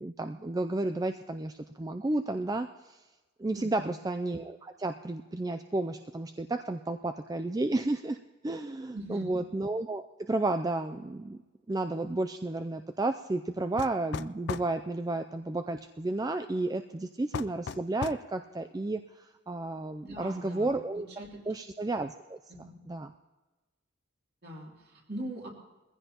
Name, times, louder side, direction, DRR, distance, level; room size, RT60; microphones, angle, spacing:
voice 1, 0.0-3.0 3.4-8.2 8.4-11.4 11.7-21.1 21.5-23.1, right 2 dB, 20° right, 8 dB, 0.3 m, -32 dB
voice 2, 3.5-3.9 8.9-9.4 20.0-21.4 22.5-22.8 24.4-25.5, right 1 dB, 50° right, -2 dB, 3.0 m, -42 dB
sound 1, 13.8-14.7 17.3-18.3, left 6 dB, 55° left, 0.3 m, -36 dB
22.0 x 15.5 x 2.9 m, 1.2 s
head